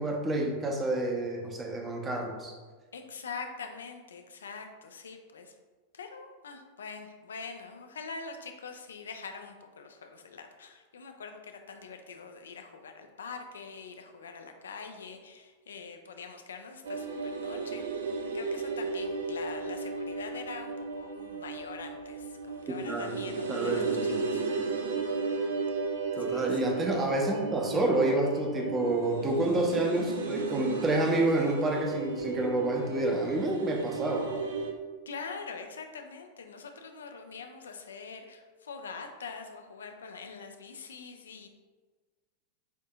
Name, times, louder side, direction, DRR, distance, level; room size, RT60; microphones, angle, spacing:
voice 1, 0.0-2.5 22.8-23.2 23.5-24.1 26.2-34.3, right 1 dB, 20° right, 1 dB, 0.8 m, -29 dB
voice 2, 2.9-5.5 5.9-17.8 18.1-24.8 26.2-26.6 35.1-41.5, left 5 dB, 65° left, 5 dB, 0.5 m, -44 dB
sound 1, 16.8-34.7, right 4 dB, 65° right, 0.5 m, -34 dB
8.0 x 2.7 x 2.3 m, 1.4 s
figure-of-eight pair, 90°, 0 cm